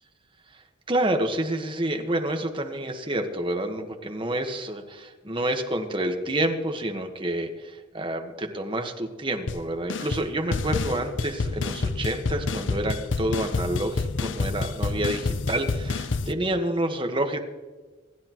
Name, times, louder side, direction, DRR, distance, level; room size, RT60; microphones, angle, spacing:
voice 1, 0.9-17.4, right 1 dB, 25° right, 4 dB, 1.4 m, -28 dB
sound 1, 9.5-9.6 9.9-10.3 10.5-16.3, left 3 dB, 85° left, 0.7 m, -28 dB
27.0 x 10.5 x 3.1 m, 1.3 s
head